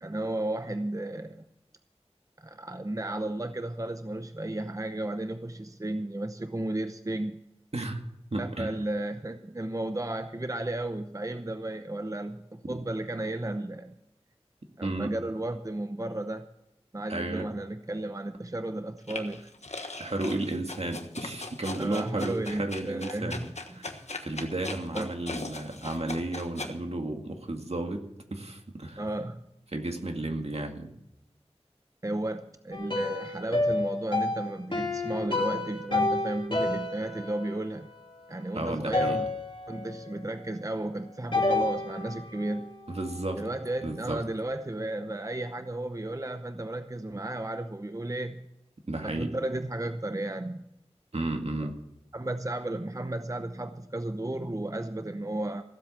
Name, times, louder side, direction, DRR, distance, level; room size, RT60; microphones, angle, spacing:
voice 1, 0.0-1.4 2.4-7.4 8.4-13.9 14.8-16.5 16.9-19.5 21.8-23.8 24.9-25.1 29.0-29.4 32.0-37.9 38.3-39.3 39.7-42.7 43.4-48.5 49.0-50.6 51.6-51.7 52.1-55.6, right 1 dB, 30° right, 8 dB, 0.8 m, -33 dB
voice 2, 8.3-8.7 14.8-15.1 17.1-17.5 20.0-28.0 28.3-29.1 29.7-30.9 38.5-39.2 42.9-43.5 43.8-44.2 48.9-49.4 51.1-51.8, right 2 dB, 65° right, 4 dB, 2.0 m, -33 dB
sound 1, 19.1-26.7, left 2 dB, 85° left, 1.4 m, -39 dB
sound 2, 32.7-38.5 38.9-40.1 41.3-43.5, left 2 dB, 50° left, 2.6 m, -30 dB
16.0 x 7.9 x 7.3 m, 0.84 s
wide cardioid pair, 45°, 11 cm